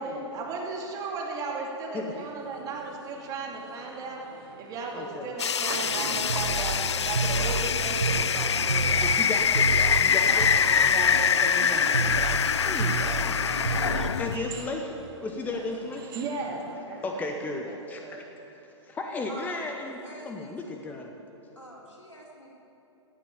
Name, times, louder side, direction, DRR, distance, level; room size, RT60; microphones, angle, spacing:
voice 1, 0.0-4.2 4.6-8.9 10.5-12.3 16.1-18.2, right 3 dB, 25° right, -1 dB, 2.5 m, -36 dB
sound 1, 2.1-16.8, right 6 dB, 45° right, 1.4 m, -46 dB
voice 2, 4.9-5.3 9.0-9.7 10.0-10.5 12.6-13.5 14.2-16.0 16.9-21.1, left 2 dB, 10° left, 3 dB, 0.9 m, -35 dB
sound 2, 5.4-14.4, left 7 dB, 65° left, 0.5 m, -24 dB
sound 3, 5.9-14.1, right 3 dB, 75° right, 1.0 m, -31 dB
voice 3, 10.1-10.9 12.4-14.7 15.4-15.7 16.4-16.6 16.9-17.1 19.3-19.5 19.9-20.8 21.6-22.5, equal, 85° left, -4 dB, 4.5 m, -45 dB
16.5 x 8.6 x 8.9 m, 2.8 s
figure-of-eight pair, 115°, 16 cm